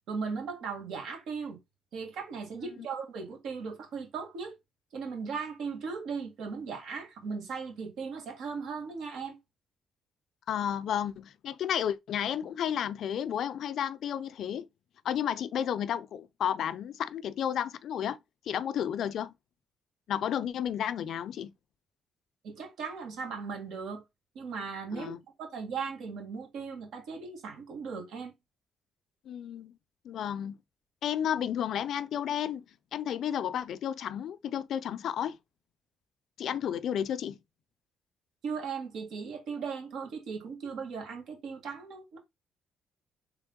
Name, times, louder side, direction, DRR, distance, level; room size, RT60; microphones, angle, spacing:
voice 1, 0.1-1.6 1.9-4.5 4.9-9.4 22.4-24.0 24.3-25.1 25.4-28.3 38.4-42.2, right 5 dB, 80° right, 1.6 m, -37 dB
voice 2, 10.5-14.7 15.0-18.2 18.5-19.3 20.1-21.5 25.0-25.2 29.3-29.7 30.0-30.6 31.0-32.6 32.9-35.4 36.4-37.4, left 9 dB, 70° left, 0.4 m, -32 dB
3.5 x 3.2 x 3.7 m
cardioid pair, 90°, 0 cm